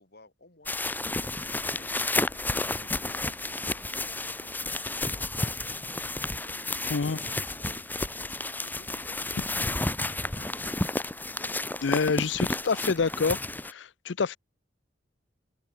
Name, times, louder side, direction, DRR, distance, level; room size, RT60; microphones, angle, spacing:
voice 1, 0.0-5.6 6.4-9.5 9.8-10.7 11.3-11.8 12.1-12.2 12.4-12.8, left 2 dB, 60° left, 7.1 m, -56 dB
sound 1, 0.7-13.7, left 2 dB, 10° left, 1.3 m, -31 dB
voice 2, 11.8-13.4 13.6-14.4, left 5 dB, 80° left, 0.6 m, -27 dB
head